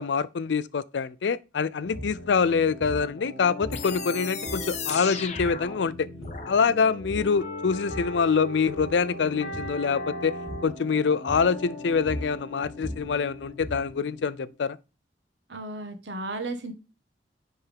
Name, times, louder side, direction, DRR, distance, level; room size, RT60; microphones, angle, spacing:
voice 1, 0.0-6.1 6.5-10.4 10.6-14.8, left 5 dB, 90° left, 0.5 m, -25 dB
sound 1, 1.8-14.5, equal, 55° left, 2.3 m, -39 dB
sound 2, 1.9-2.2 2.8-3.1 3.6-4.1 4.4-4.9 5.3-5.6 6.0-6.6 7.0-7.4 7.7-8.2 8.6-9.0 9.5-9.8 10.5-10.8 11.3-11.6 11.9-14.0, equal, 5° left, 3.1 m, -38 dB
sound 3, 3.7-6.6, left 6 dB, 40° left, 1.0 m, -36 dB
voice 2, 15.5-16.7, right 2 dB, 80° right, 1.2 m, -34 dB
9.9 x 3.5 x 3.4 m
head